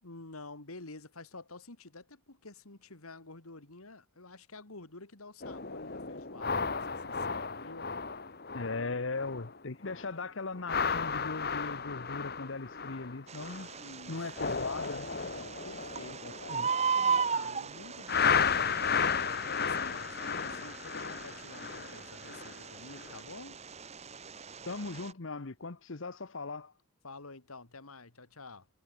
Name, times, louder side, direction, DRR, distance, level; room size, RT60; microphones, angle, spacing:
voice 1, 0.0-8.0 13.8-14.3 15.3-16.5 16.9-23.6 27.0-28.7, left 3 dB, 85° left, 2.6 m, -50 dB
sound 1, 5.4-9.6 9.8-10.1 10.5-13.8 14.1-17.4 18.1-22.6 23.0-23.2, left 6 dB, 45° left, 1.5 m, -34 dB
voice 2, 8.5-13.7 14.1-15.1 16.1-16.7 24.7-26.7, left 3 dB, 60° left, 1.0 m, -39 dB
Bird, 13.3-25.1, right 5 dB, 30° right, 1.4 m, -37 dB
head